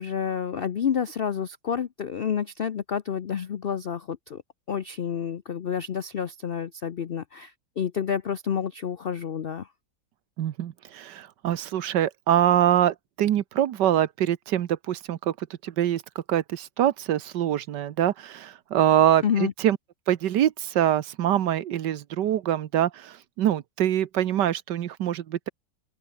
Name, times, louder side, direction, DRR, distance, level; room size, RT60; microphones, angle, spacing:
voice 1, 0.0-4.4 4.7-9.7 19.2-19.5, left 8 dB, 85° left, 0.5 m, -29 dB
voice 2, 10.4-19.8 20.1-25.5, right 11 dB, 70° right, 1.5 m, -24 dB
open air
omnidirectional pair, 1.9 m